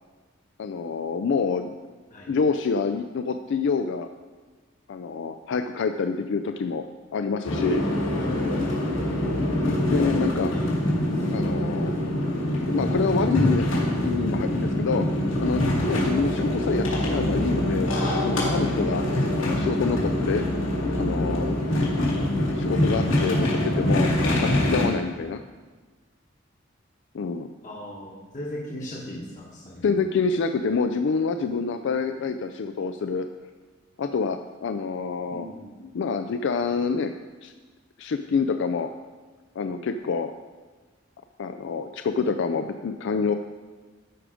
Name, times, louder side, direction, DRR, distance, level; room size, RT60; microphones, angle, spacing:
voice 1, 0.6-1.7 2.3-4.1 4.9-6.8 7.1-7.9 9.6-10.5 11.3-12.1 12.7-13.7 14.0-15.0 15.4-17.9 18.2-19.0 19.4-20.4 20.9-21.6 22.5-24.1 24.4-25.4 27.1-27.5 29.8-33.3 34.0-35.5 35.9-37.1 37.4-37.5 38.0-38.9 39.6-40.3 41.4-43.3, left 5 dB, 65° left, 8 dB, 0.4 m, -27 dB
sound 1, 7.4-24.9, left 1 dB, 85° left, 2.3 m, -24 dB
voice 2, 27.6-30.0 35.3-35.7, left 1 dB, 40° left, -3 dB, 1.2 m, -38 dB
12.5 x 5.0 x 5.0 m, 1.4 s
head